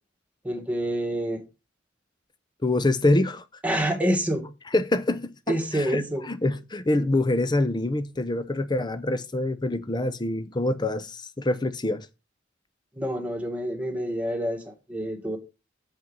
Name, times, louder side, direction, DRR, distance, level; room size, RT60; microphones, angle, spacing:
voice 1, 0.4-1.4 3.6-4.4 5.5-6.2 13.0-15.4, right 1 dB, 10° right, 1.8 m, -27 dB
voice 2, 2.6-3.4 4.7-12.1, left 2 dB, 25° left, 0.7 m, -25 dB
7.5 x 5.4 x 5.4 m
head